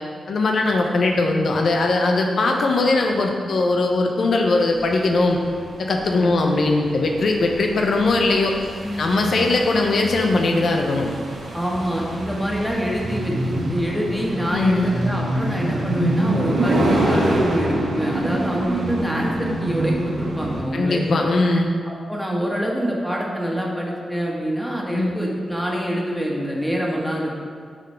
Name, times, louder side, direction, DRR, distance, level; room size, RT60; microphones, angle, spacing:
voice 1, 0.3-5.4 5.8-8.5 9.0-11.1 14.5-15.0 16.5-16.7 20.7-21.7 24.9-25.2, left 2 dB, 70° left, 2 dB, 0.6 m, -20 dB
sound 1, 4.8-20.6, right 1 dB, 85° right, 1.1 m, -26 dB
voice 2, 11.5-21.0 21.9-27.3, equal, 5° left, -3 dB, 1.6 m, -26 dB
7.0 x 3.9 x 5.5 m, 2.1 s
cardioid pair, 50°, 0 cm